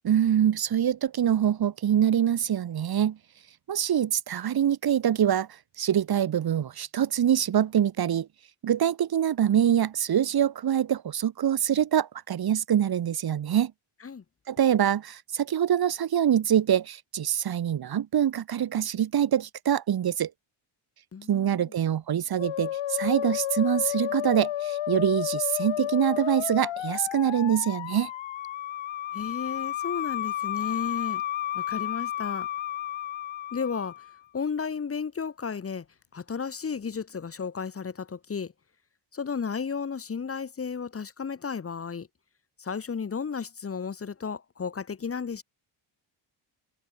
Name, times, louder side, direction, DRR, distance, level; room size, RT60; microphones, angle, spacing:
voice 1, 0.0-3.2 3.7-5.5 5.8-8.3 8.6-13.7 14.5-20.3 21.3-28.1, right 9 dB, 50° right, 2.8 m, -24 dB
voice 2, 21.1-21.7 29.1-31.2 31.5-32.5 33.5-34.0 34.3-35.9 36.1-38.5 39.1-42.1 42.6-45.4, left 6 dB, 30° left, 2.3 m, -33 dB
Musical instrument, 22.4-34.2, left 13 dB, 70° left, 2.2 m, -32 dB
wide cardioid pair, 175°, 48 cm